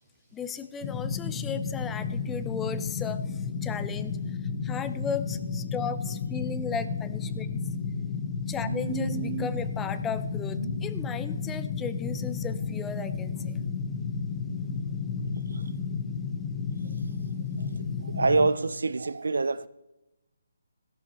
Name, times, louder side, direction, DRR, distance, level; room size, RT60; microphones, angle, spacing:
voice 1, 0.3-4.2 4.6-7.5 8.5-13.6, left 6 dB, 10° left, 0.5 m, -35 dB
sound 1, 0.8-18.5, left 5 dB, 30° left, 1.0 m, -32 dB
voice 2, 8.6-9.5 10.6-10.8 15.5-15.7 17.6-19.7, right 3 dB, 80° right, 0.5 m, -28 dB
14.5 x 12.0 x 4.2 m
hypercardioid pair, 155°, 0 cm